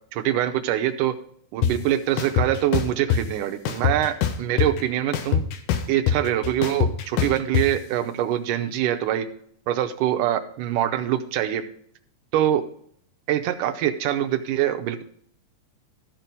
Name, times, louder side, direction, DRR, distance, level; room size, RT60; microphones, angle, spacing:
voice 1, 0.1-1.1 1.5-5.4 5.9-9.3 9.7-11.6 12.3-12.7 13.3-15.0, right 11 dB, 85° right, 7 dB, 2.2 m, -24 dB
sound 1, 1.6-1.7 2.2-3.2 3.7-4.8 5.1-7.7, left 9 dB, 85° left, 2.5 m, -22 dB
13.5 x 4.5 x 5.2 m, 0.64 s
omnidirectional pair, 3.7 m